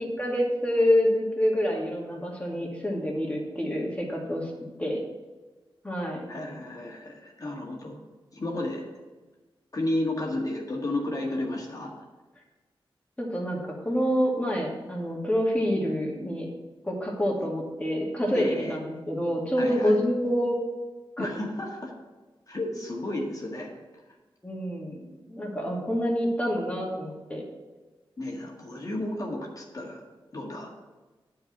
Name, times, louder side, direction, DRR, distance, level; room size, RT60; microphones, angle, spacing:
voice 1, 0.2-4.5 4.8-5.0 5.8-6.2 13.2-16.5 16.9-20.6 21.2-21.3 24.4-27.4, equal, 15° left, -2 dB, 2.3 m, -27 dB
voice 2, 6.3-8.0 8.3-8.8 9.7-11.9 18.3-18.8 19.6-20.0 21.2-21.9 22.5-23.7 28.2-30.0 30.3-30.7, left 1 dB, 40° left, -1 dB, 1.7 m, -32 dB
9.8 x 4.7 x 7.2 m, 1.2 s
wide cardioid pair, 100°, 9 cm